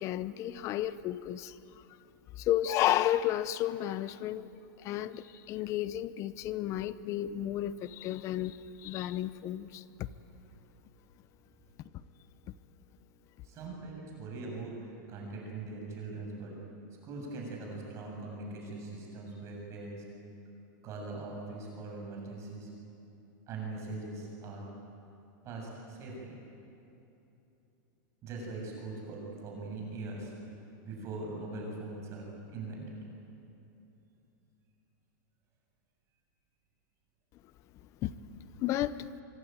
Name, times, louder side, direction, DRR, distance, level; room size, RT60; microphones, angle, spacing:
voice 1, 0.0-1.5 2.4-4.5 4.8-10.1 38.0-38.1 38.6-39.1, left 12 dB, 30° left, 16 dB, 0.7 m, -32 dB
voice 2, 13.4-14.7 15.1-16.5 17.0-20.0 20.8-22.7 23.5-24.7 25.4-26.3 28.2-30.3 30.8-32.3 32.5-33.0, right 3 dB, 30° right, -1 dB, 7.4 m, -41 dB
24.5 x 24.0 x 9.2 m, 2.9 s
supercardioid pair, 160°, 11 cm